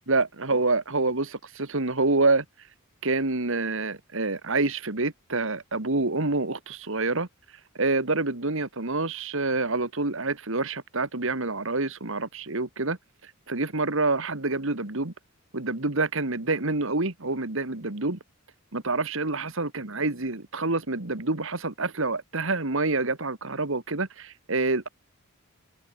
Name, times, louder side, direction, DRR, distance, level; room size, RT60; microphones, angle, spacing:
voice 1, 0.1-2.5 3.0-7.3 7.8-13.0 13.2-15.1 15.5-18.2 18.7-24.9, right 3 dB, 65° right, 2.1 m, -27 dB
head